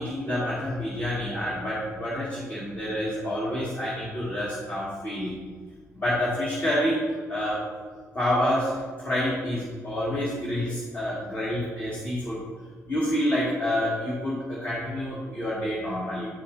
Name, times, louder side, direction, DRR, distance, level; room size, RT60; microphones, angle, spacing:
voice 1, 0.0-5.3 5.9-7.7 8.1-12.4 12.9-16.3, left 1 dB, 30° left, -7 dB, 2.3 m, -28 dB
11.0 x 7.3 x 2.8 m, 1.5 s
cardioid pair, 120°, 6 cm